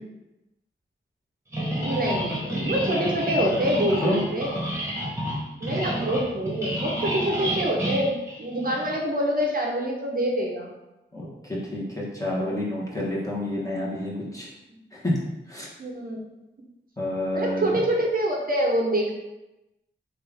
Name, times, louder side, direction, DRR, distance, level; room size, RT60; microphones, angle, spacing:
sound 1, 1.5-9.0, equal, 15° right, 1.3 m, -29 dB
voice 1, 1.8-4.7 5.6-8.1 8.4-10.7 15.8-16.2 17.3-19.1, equal, 45° right, -1 dB, 0.7 m, -25 dB
voice 2, 11.1-14.5 14.9-15.7 17.0-17.8, left 1 dB, 15° left, -6 dB, 1.2 m, -29 dB
3.3 x 2.5 x 3.4 m, 0.98 s
cardioid pair, 50°, 20 cm